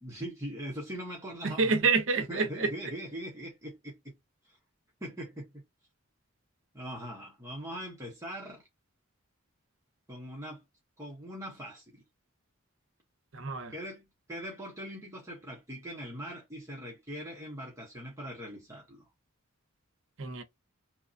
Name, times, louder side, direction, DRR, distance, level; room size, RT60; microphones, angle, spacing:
voice 1, 0.0-1.8 2.2-4.2 4.4-4.6 5.0-5.6 6.7-8.6 10.1-10.6 11.0-12.0 13.7-19.1, equal, 15° right, 0.8 m, -41 dB
voice 2, 1.4-2.7 13.3-13.7 20.2-20.4, right 4 dB, 60° right, 0.7 m, -28 dB
2.9 x 2.2 x 2.5 m
head